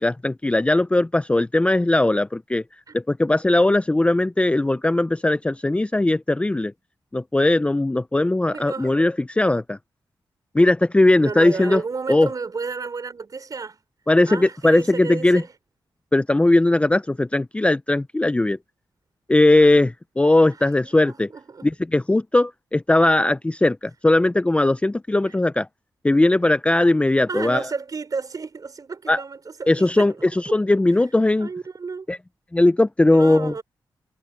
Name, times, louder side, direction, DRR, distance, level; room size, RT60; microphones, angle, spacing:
voice 1, 0.0-2.6 2.9-6.7 7.1-9.8 10.5-11.8 12.1-12.3 14.1-15.4 16.1-18.6 19.3-21.3 21.6-25.7 26.0-27.7 29.1-29.2 29.7-31.5 32.1-32.2 32.5-33.5, left 2 dB, 15° left, 0.5 m, -19 dB
voice 2, 8.5-9.0 11.2-13.8 14.3-15.5 19.6-19.8 20.8-21.7 27.3-30.1 30.5-30.6 31.4-32.1 33.0-33.6, right 4 dB, 50° right, 4.8 m, -32 dB
wide cardioid pair, 95°, 8 cm